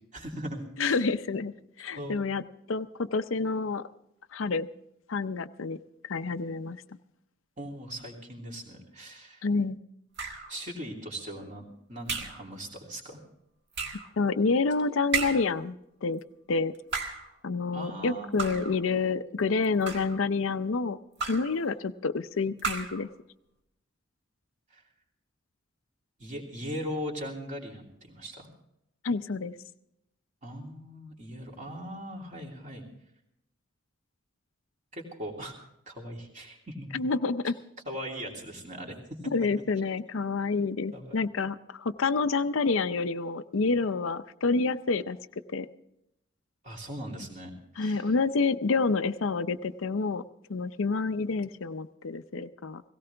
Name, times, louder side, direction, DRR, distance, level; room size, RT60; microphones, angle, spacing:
voice 1, 0.1-1.0 1.9-2.2 7.6-9.4 10.5-13.2 17.7-18.7 24.7-24.8 26.2-28.5 30.4-32.8 34.9-35.5 35.9-36.9 37.8-39.0 40.9-41.2 46.6-48.1, equal, 35° right, 0 dB, 2.9 m, -39 dB
voice 2, 0.8-2.4 2.7-3.8 4.3-4.7 5.1-5.8 6.0-6.8 9.4-9.8 14.2-15.8 16.0-16.2 16.5-16.7 17.4-23.1 29.0-29.5 36.9-37.5 39.3-45.2 45.5-45.7 47.8-50.2 50.5-52.8, left 4 dB, 75° left, 11 dB, 0.6 m, -28 dB
sound 1, 10.2-10.6 12.1-12.5 13.7-14.1 15.1-15.6 16.7-17.3 18.4-18.8 19.6-20.2 21.2-21.6 22.6-23.1, right 5 dB, 55° right, 1.8 m, -33 dB
17.0 x 17.0 x 3.4 m, 0.79 s
head